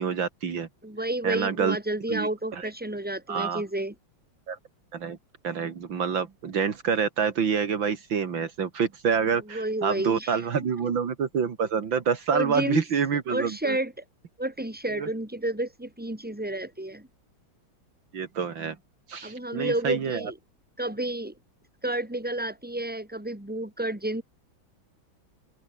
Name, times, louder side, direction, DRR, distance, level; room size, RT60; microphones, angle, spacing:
voice 1, 0.0-0.7 1.2-1.8 2.1-2.7 3.3-3.6 4.5-4.6 4.9-5.2 5.4-13.8 14.9-15.1 18.1-18.8 19.1-20.3, right 6 dB, 70° right, 2.6 m, -27 dB
voice 2, 0.8-3.9 9.5-10.4 12.3-12.8 13.3-13.9 14.4-17.1 19.2-20.3 20.8-21.3 21.8-24.2, right 1 dB, 5° right, 3.8 m, -30 dB
open air
omnidirectional pair, 2.2 m